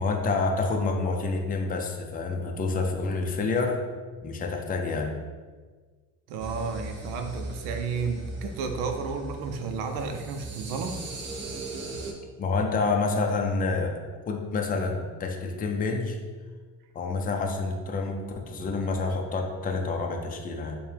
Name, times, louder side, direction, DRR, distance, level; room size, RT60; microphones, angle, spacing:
voice 1, 0.0-3.8 4.2-5.1 12.4-14.0 14.3-16.2 16.9-20.8, left 3 dB, 25° left, 2 dB, 0.5 m, -28 dB
voice 2, 6.3-11.0, right 5 dB, 80° right, 5 dB, 0.6 m, -32 dB
sound 1, 6.4-12.1, right 2 dB, 30° right, 0.6 m, -38 dB
4.5 x 2.2 x 3.4 m, 1.5 s
supercardioid pair, 95°, 39 cm